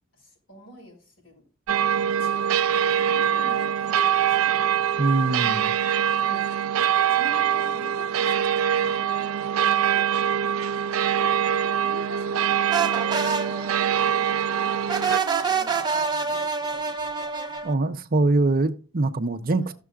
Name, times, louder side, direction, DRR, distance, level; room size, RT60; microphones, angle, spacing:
voice 1, 0.1-1.4 2.0-2.4 2.8-4.9 6.1-6.5 7.1-9.1 9.7-10.1 11.1-13.6 14.2-17.0 19.6-19.7, left 1 dB, 70° left, 4.9 m, -45 dB
sound 1, 1.7-15.2, right 9 dB, 85° right, 0.4 m, -23 dB
voice 2, 5.0-5.8 17.6-19.7, right 2 dB, 45° right, 0.7 m, -23 dB
sound 2, 12.7-17.7, right 5 dB, 20° right, 0.9 m, -27 dB
15.0 x 6.7 x 2.4 m
head